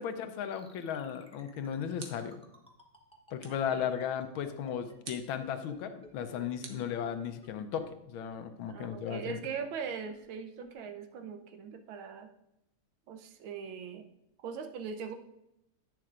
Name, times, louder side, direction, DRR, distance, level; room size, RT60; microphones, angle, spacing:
voice 1, 0.0-2.4 3.3-9.4, left 8 dB, 85° left, 9 dB, 1.5 m, -36 dB
sound 1, 0.5-5.7 6.0-6.1 6.4-6.5 6.7-6.8 7.1-7.2 7.4-7.5 7.8-7.9 8.2-8.3 8.7-8.8 9.1-9.2 9.6-9.7 10.1-10.2 10.6-10.7, equal, 5° left, 0.5 m, -55 dB
sound 2, 2.0-2.5 3.4-3.8 5.0-5.4 6.6-7.5, right 5 dB, 60° right, 1.5 m, -49 dB
voice 2, 3.5-3.9 8.7-12.3 13.1-14.1 14.4-15.1, right 6 dB, 85° right, 7 dB, 1.6 m, -41 dB
10.5 x 8.9 x 2.5 m, 0.84 s
omnidirectional pair, 2.2 m